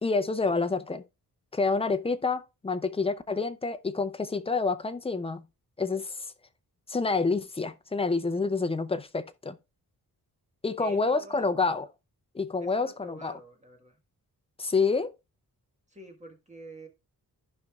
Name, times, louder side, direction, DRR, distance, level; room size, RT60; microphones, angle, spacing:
voice 1, 0.0-1.0 1.5-5.4 5.8-6.3 6.9-9.6 10.6-11.9 12.3-13.4 14.6-15.1, left 4 dB, 15° left, 0.5 m, -28 dB
voice 2, 10.8-11.6 12.6-14.0 15.9-16.9, right 1 dB, 20° right, 1.4 m, -47 dB
14.5 x 5.3 x 2.3 m
wide cardioid pair, 170°, 38 cm